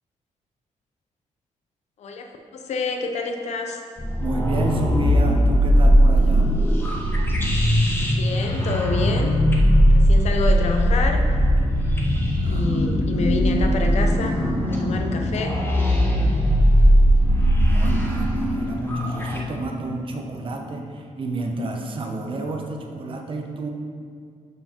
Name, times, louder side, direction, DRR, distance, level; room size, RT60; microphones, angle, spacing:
voice 1, 2.0-3.8 8.1-9.4 9.9-11.2 12.4-15.6, left 3 dB, 60° left, 4 dB, 0.6 m, -28 dB
sound 1, 4.0-19.4, equal, 15° left, 0.8 m, -19 dB
voice 2, 4.2-6.6 12.4-13.0 17.6-23.7, right 2 dB, 40° right, 2 dB, 0.7 m, -30 dB
11.5 x 4.5 x 2.9 m, 2.2 s
wide cardioid pair, 165°, 13 cm